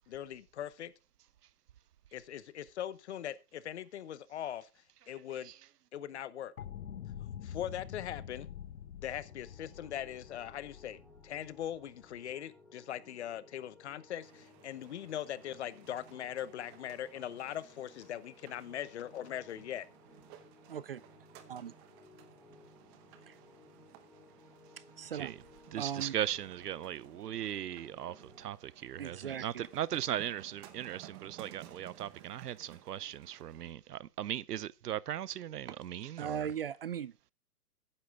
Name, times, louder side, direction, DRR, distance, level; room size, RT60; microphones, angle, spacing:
voice 1, 0.1-0.9 2.1-4.7 5.1-5.5 5.9-6.5 7.4-8.5 9.0-19.9, left 10 dB, 45° left, 1.0 m, -41 dB
sound 1, 6.6-12.3, left 9 dB, 70° left, 1.3 m, -46 dB
sound 2, 9.0-28.4, left 3 dB, ahead, 3.9 m, -60 dB
sound 3, 14.2-33.7, right 12 dB, 15° right, 0.8 m, -57 dB
voice 2, 20.7-21.0 21.5-21.7 23.3-23.4 25.0-25.4 25.8-26.1 29.0-29.7 36.2-37.3, right 8 dB, 40° right, 0.5 m, -38 dB
voice 3, 25.7-36.5, right 11 dB, 80° right, 0.8 m, -38 dB
13.5 x 10.0 x 3.6 m
hypercardioid pair, 155°, 46 cm